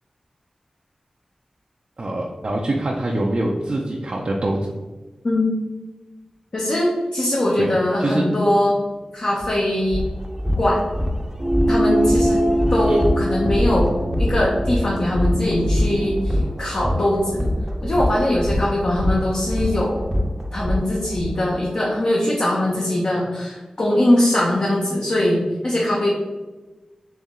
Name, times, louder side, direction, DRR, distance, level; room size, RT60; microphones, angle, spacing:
voice 1, 2.0-4.7 7.6-7.7 8.0-8.2 12.9-13.0, right 1 dB, 55° right, -2 dB, 0.6 m, -24 dB
voice 2, 5.2-5.6 6.5-8.8 9.1-10.0 10.6-10.8 11.7-12.4 12.7-17.5 17.8-20.0 20.5-26.1, left 1 dB, 60° left, -5 dB, 0.9 m, -21 dB
sound 1, 9.4-9.5 9.9-21.3, equal, 20° right, 0.7 m, -24 dB
sound 2, 11.4-16.2, equal, 10° left, 0.9 m, -23 dB
4.2 x 3.1 x 3.7 m, 1.2 s
cardioid pair, 45°, 2 cm